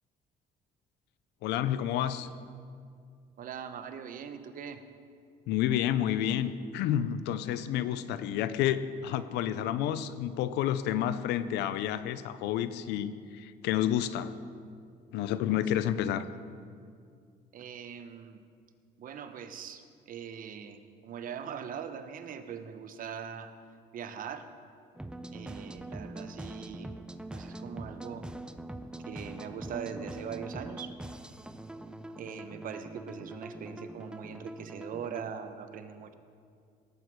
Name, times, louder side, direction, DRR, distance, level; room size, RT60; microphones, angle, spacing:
voice 1, 1.4-2.3 5.5-14.4 15.1-16.2, left 11 dB, 85° left, 14 dB, 0.6 m, -30 dB
voice 2, 3.4-4.8 15.8-15.9 17.5-18.4 19.0-23.5 23.9-24.5 25.3-26.9 27.3-28.3 29.0-30.9 32.2-36.1, right 7 dB, 55° right, 9 dB, 0.9 m, -41 dB
sound 1, 24.9-35.3, right 1 dB, 5° right, 0.5 m, -43 dB
18.0 x 8.0 x 4.6 m, 2.2 s
cardioid pair, 110°, 17 cm